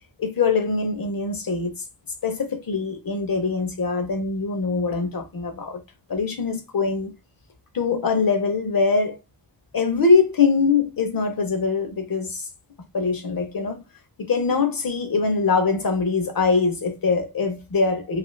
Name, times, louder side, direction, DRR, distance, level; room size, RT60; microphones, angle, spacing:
voice 1, 0.2-1.8 2.2-5.8 6.1-7.1 7.7-9.2 9.7-12.5 12.9-13.8 14.2-18.2, left 4 dB, 55° left, 0.7 m, -23 dB
2.8 x 2.4 x 3.1 m
wide cardioid pair, 120°, 42 cm